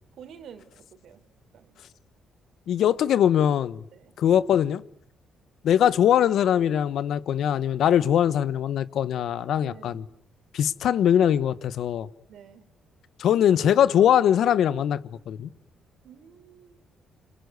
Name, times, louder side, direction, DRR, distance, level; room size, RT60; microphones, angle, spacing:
voice 1, 0.2-1.2 1.5-1.7 3.9-4.1 9.6-10.0 12.3-12.6 16.0-16.8, right 8 dB, 70° right, 3.7 m, -48 dB
voice 2, 2.7-3.8 4.2-4.8 5.6-10.0 10.5-12.1 13.2-15.5, left 10 dB, 75° left, 1.1 m, -22 dB
29.0 x 21.0 x 9.7 m
cardioid pair, 90°, 0 cm